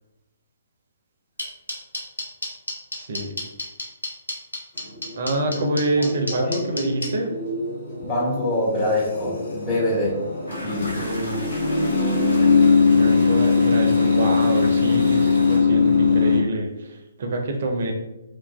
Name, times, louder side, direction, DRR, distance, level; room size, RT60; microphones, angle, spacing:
sound 1, 1.4-7.1, left 1 dB, 85° left, 0.8 m, -29 dB
voice 1, 2.9-3.3 5.2-7.3 11.0-11.5 12.9-17.9, right 1 dB, 50° right, 3 dB, 0.4 m, -26 dB
sound 2, 4.8-16.4, left 4 dB, 45° left, 0.7 m, -21 dB
voice 2, 6.0-6.7 8.0-10.2 10.6-11.1, left 1 dB, 30° left, -6 dB, 1.1 m, -25 dB
sound 3, 10.5-15.6, equal, 65° left, 1.1 m, -38 dB
3.1 x 2.3 x 2.2 m, 0.98 s
figure-of-eight pair, 130°, 0 cm